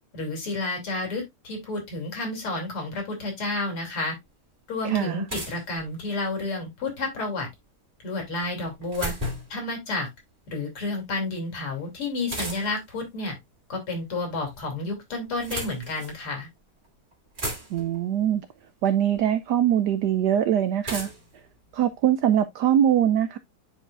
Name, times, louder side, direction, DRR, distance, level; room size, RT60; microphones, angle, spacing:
voice 1, 0.1-4.2 4.7-7.5 8.0-9.1 9.5-10.1 10.5-13.4 13.7-16.5, left 2 dB, 80° left, 3.8 m, -30 dB
sound 1, 4.3-4.4 5.3-6.4 8.4-9.6 12.3-12.9 14.0-14.6 15.2-16.2 16.8-16.9 17.1-18.0 19.1-19.2 20.8-22.4, right 1 dB, 20° right, 2.4 m, -35 dB
voice 2, 4.8-5.2 17.7-18.5 18.8-21.1 21.7-23.4, right 10 dB, 85° right, 0.9 m, -22 dB
10.0 x 4.8 x 2.4 m
omnidirectional pair, 2.4 m